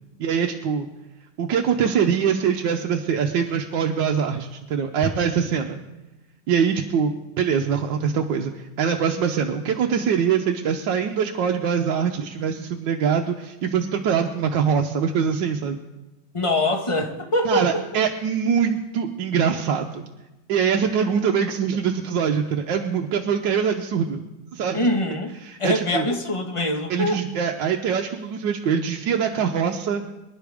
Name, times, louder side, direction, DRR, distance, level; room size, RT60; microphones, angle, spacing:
voice 1, 0.2-0.9 1.4-5.8 6.5-15.8 17.4-20.0 20.5-24.2 24.5-24.9 25.4-26.1 26.9-30.0, right 7 dB, 70° right, 3 dB, 1.4 m, -23 dB
voice 2, 16.3-17.8 24.7-25.3 25.6-27.2, left 1 dB, 20° left, 3 dB, 1.1 m, -23 dB
24.5 x 11.0 x 3.5 m, 1.0 s
omnidirectional pair, 2.2 m